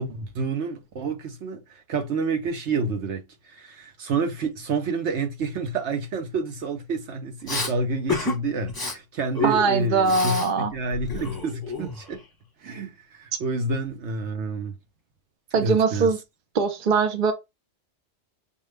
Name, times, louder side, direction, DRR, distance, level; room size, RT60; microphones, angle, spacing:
voice 1, 0.0-12.2 12.6-14.7 15.6-16.1, right 3 dB, 70° right, 1.1 m, -29 dB
Respiratory sounds, 7.5-7.7 8.1-8.4 8.7-8.9 9.3-10.5 10.8-12.2, left 3 dB, 20° left, 1.0 m, -30 dB
voice 2, 9.4-10.7 15.5-16.2 16.5-17.3, right 4 dB, 45° right, 0.9 m, -21 dB
5.4 x 2.4 x 3.2 m
omnidirectional pair, 1.2 m